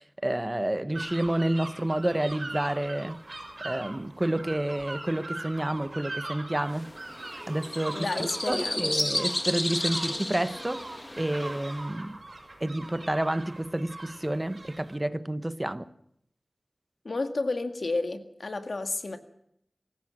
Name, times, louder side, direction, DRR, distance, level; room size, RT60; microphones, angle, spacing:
voice 1, 0.2-3.2 3.6-6.9 7.3-10.8 11.2-12.2 12.6-15.9, right 1 dB, 20° right, 1.0 m, -29 dB
sound 1, 0.9-15.0, right 2 dB, 55° right, 5.7 m, -42 dB
sound 2, 6.7-11.9, left 1 dB, 25° left, 1.9 m, -33 dB
voice 2, 7.9-9.0 17.0-19.2, left 3 dB, 70° left, 1.9 m, -31 dB
24.5 x 15.0 x 7.5 m
wide cardioid pair, 75°, 0 cm